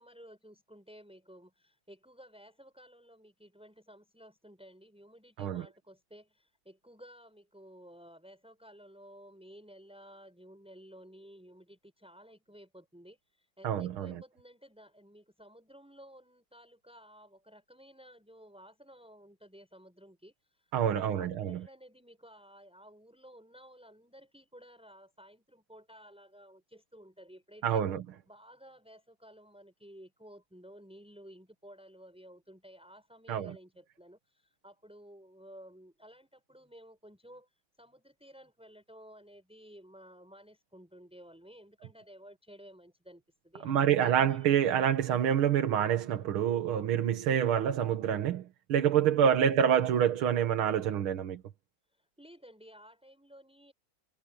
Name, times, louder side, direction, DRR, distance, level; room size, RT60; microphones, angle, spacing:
voice 1, 0.0-27.9 28.3-44.5 51.9-53.7, equal, ahead, 7.8 m, -54 dB
voice 2, 13.6-14.2 20.7-21.6 27.6-28.0 33.3-33.5 43.6-48.4 48.7-51.4, right 9 dB, 85° right, 2.2 m, -27 dB
omnidirectional pair, 2.2 m